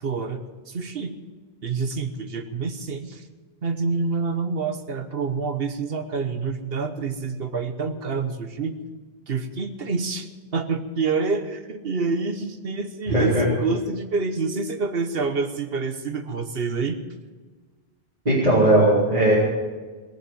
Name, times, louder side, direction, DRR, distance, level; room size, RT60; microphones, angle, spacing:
voice 1, 0.0-1.2 1.6-3.3 3.6-8.8 9.3-17.0, right 4 dB, 70° right, 8 dB, 1.3 m, -27 dB
voice 2, 13.1-13.4 18.2-19.3, right 1 dB, 40° right, -9 dB, 3.9 m, -18 dB
19.5 x 7.3 x 9.6 m, 1.4 s
omnidirectional pair, 1.0 m